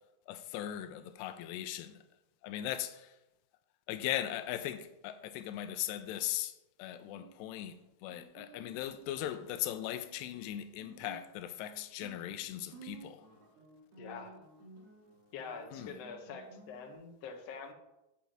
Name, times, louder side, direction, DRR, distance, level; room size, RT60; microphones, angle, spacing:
voice 1, 0.3-1.9 2.4-3.1 3.9-13.3 15.7-15.9, left 12 dB, 85° left, 2.7 m, -39 dB
Guitar, 6.9-16.9, right 4 dB, 75° right, 4.2 m, -56 dB
voice 2, 14.0-14.3 15.3-17.7, left 5 dB, 70° left, 1.5 m, -45 dB
8.5 x 5.2 x 7.2 m
omnidirectional pair, 4.8 m